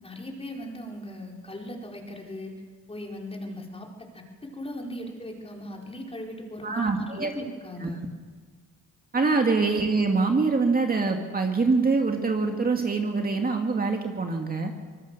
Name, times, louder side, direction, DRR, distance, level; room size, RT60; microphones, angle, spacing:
voice 1, 0.0-2.5 2.9-3.9 4.1-8.0 9.1-9.4, left 1 dB, 20° left, 0 dB, 4.5 m, -38 dB
voice 2, 6.6-7.3 7.8-7.9 9.1-14.7, right 4 dB, 30° right, 3 dB, 2.3 m, -24 dB
24.5 x 20.5 x 6.8 m, 1.5 s
cardioid pair, 90°, 30 cm